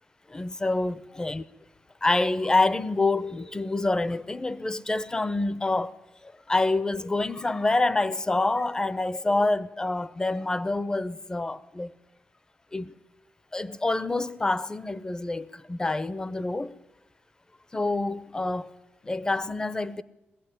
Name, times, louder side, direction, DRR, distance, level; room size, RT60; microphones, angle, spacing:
voice 1, 0.3-1.4 2.0-5.9 6.2-11.9 12.7-12.9 13.5-16.8 17.7-18.8 19.0-20.0, left 2 dB, 20° left, 0.7 m, -27 dB
20.5 x 15.0 x 9.9 m
wide cardioid pair, 115°, 4 cm